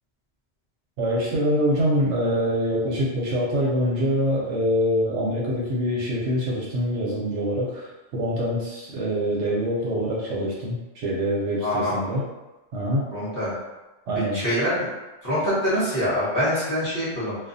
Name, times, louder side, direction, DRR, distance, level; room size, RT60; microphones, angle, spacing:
voice 1, 1.0-12.2 12.7-13.1 14.1-14.4, equal, 70° right, -5 dB, 0.8 m, -25 dB
voice 2, 11.6-12.0 13.1-13.5 14.1-14.9 15.2-17.4, equal, 20° left, -10 dB, 0.8 m, -25 dB
2.4 x 2.2 x 2.5 m, 1.1 s
omnidirectional pair, 1.3 m